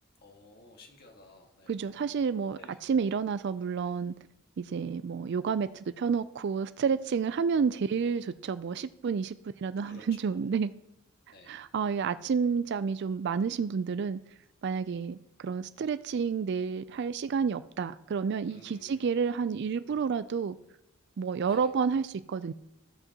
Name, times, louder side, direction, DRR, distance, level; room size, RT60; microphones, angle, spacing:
voice 1, 0.2-1.9 2.3-2.8 9.8-10.4 11.3-11.6 18.5-19.2 21.5-21.7, left 2 dB, 50° left, 1.7 m, -54 dB
voice 2, 1.7-4.1 4.6-10.7 11.5-14.2 14.6-20.6 21.2-22.5, right 6 dB, 55° right, 0.4 m, -30 dB
14.0 x 8.0 x 2.9 m
head